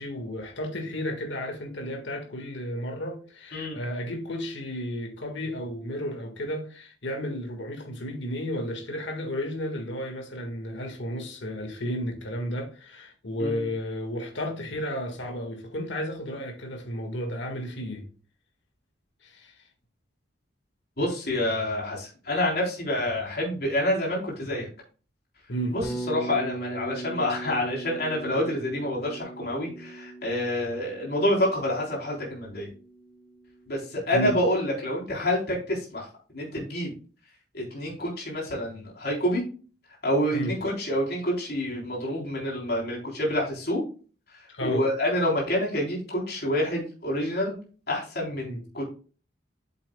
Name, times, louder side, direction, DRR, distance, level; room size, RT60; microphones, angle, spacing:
voice 1, 0.0-18.1 19.2-19.5 25.5-25.8 34.1-34.4 40.3-40.5 44.5-44.8 48.4-48.6, equal, 70° left, 1.7 m, -33 dB
voice 2, 21.0-24.7 25.7-32.7 33.7-36.1 36.3-36.9 37.5-39.4 40.0-43.8 44.6-47.5 47.9-48.8, left 1 dB, 55° left, 3.8 m, -27 dB
Bass guitar, 25.8-33.9, right 2 dB, 10° left, 1.2 m, -39 dB
8.7 x 7.3 x 2.3 m
head